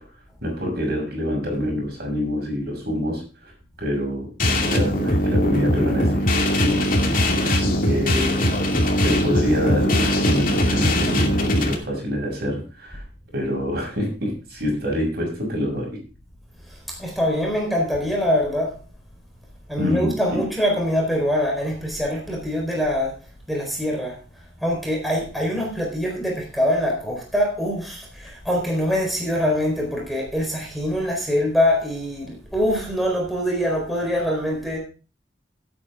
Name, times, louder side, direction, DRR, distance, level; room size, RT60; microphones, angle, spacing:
voice 1, 0.4-3.5 3.8-8.7 9.0-13.0 13.3-15.9 19.8-20.1, equal, 60° right, 1 dB, 6.6 m, -26 dB
sound 1, 4.4-11.7, left 1 dB, 50° left, 2.5 m, -20 dB
voice 2, 16.7-18.8 19.7-23.2 23.5-24.2 24.6-34.8, equal, ahead, -1 dB, 4.3 m, -24 dB
17.0 x 8.7 x 3.7 m, 0.34 s
head